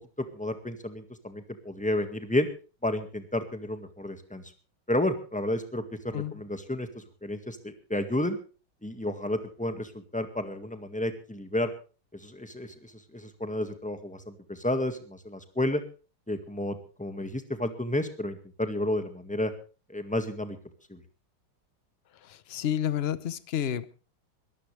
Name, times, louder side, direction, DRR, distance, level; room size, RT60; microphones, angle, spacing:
voice 1, 0.3-2.5 2.8-4.4 4.9-8.4 8.8-11.7 12.1-15.8 16.3-19.5 19.9-20.6 20.9-21.0, left 1 dB, 5° left, 8 dB, 1.7 m, -31 dB
voice 2, 22.2-24.0, left 10 dB, 45° left, 16 dB, 0.8 m, -30 dB
22.0 x 14.5 x 3.4 m, 0.36 s
omnidirectional pair, 2.0 m